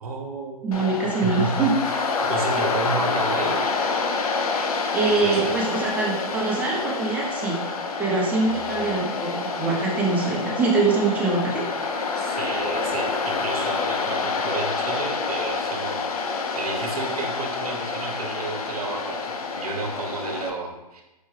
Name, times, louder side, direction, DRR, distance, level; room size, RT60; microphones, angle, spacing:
voice 1, 0.0-3.6 5.0-5.5 8.3-8.9 12.2-16.0 16.5-21.0, right 3 dB, 70° right, 1 dB, 0.8 m, -32 dB
voice 2, 0.6-1.7 4.9-7.6 8.0-11.6, right 3 dB, 10° right, -4 dB, 0.5 m, -24 dB
Waves surf, 0.7-20.5, left 4 dB, 70° left, 0.5 m, -27 dB
4.6 x 2.2 x 3.1 m, 1.0 s
hypercardioid pair, 145°, 20 cm